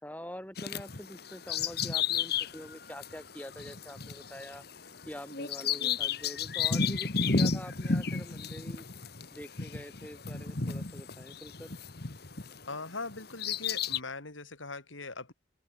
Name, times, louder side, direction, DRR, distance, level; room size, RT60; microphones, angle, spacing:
voice 1, 0.0-4.6 5.1-8.9 9.3-11.7, equal, 10° left, 6.3 m, -45 dB
Bird vocalization bird call bird song, 0.6-12.6 13.1-14.0, left 5 dB, 55° left, 1.4 m, -33 dB
voice 2, 12.7-15.3, left 3 dB, 90° left, 4.1 m, -40 dB
open air
head